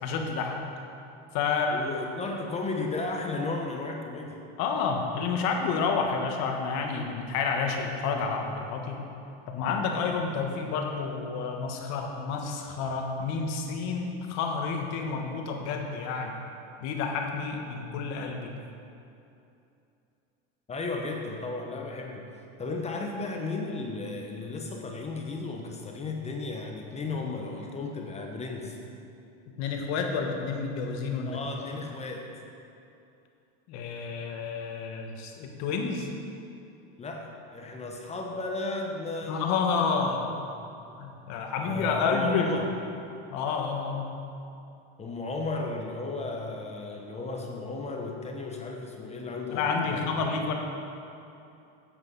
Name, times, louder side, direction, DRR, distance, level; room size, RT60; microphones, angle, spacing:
voice 1, 0.0-0.7 1.3-1.8 4.6-9.1 9.5-16.4 16.8-18.5 29.6-31.4 33.7-36.1 39.2-40.3 41.0-42.5 43.3-44.2 49.5-50.5, left 5 dB, 55° left, 2 dB, 1.4 m, -29 dB
voice 2, 1.5-4.4 20.7-22.3 22.6-28.8 31.3-32.3 37.0-39.5 40.6-40.8 41.6-42.7 45.0-50.3, left 3 dB, 20° left, 2 dB, 0.9 m, -34 dB
9.6 x 8.0 x 4.0 m, 2.7 s
supercardioid pair, 120°, 32 cm